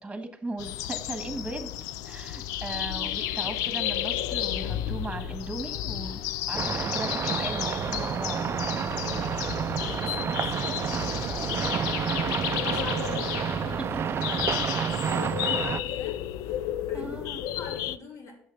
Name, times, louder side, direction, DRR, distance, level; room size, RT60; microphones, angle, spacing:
voice 1, 0.0-1.7 2.0-6.2 6.5-8.5 13.8-14.2 16.9-17.5, right 2 dB, 15° right, 7 dB, 1.6 m, -37 dB
sound 1, 0.6-18.0, left 12 dB, 80° left, 0.4 m, -32 dB
sound 2, 6.5-15.8, right 8 dB, 45° right, 0.4 m, -30 dB
voice 2, 9.8-18.4, left 4 dB, 55° left, 1 dB, 2.6 m, -46 dB
6.6 x 6.4 x 6.4 m, 0.71 s
supercardioid pair, 75°, 6 cm